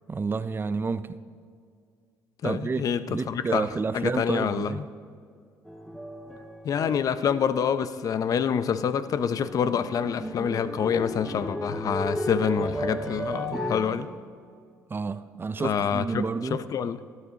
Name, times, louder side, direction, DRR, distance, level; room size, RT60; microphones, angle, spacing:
voice 1, 0.1-1.1 2.4-4.8 14.9-16.6, right 4 dB, 30° right, 0.5 m, -30 dB
voice 2, 2.4-3.7 3.9-4.9 6.6-14.1 15.6-16.2 16.5-17.0, left 7 dB, 55° left, 0.6 m, -27 dB
sound 1, 5.7-8.0 8.2-8.8 9.1-13.8, equal, ahead, 1.6 m, -34 dB
18.5 x 12.5 x 2.9 m
supercardioid pair, 70°, 7 cm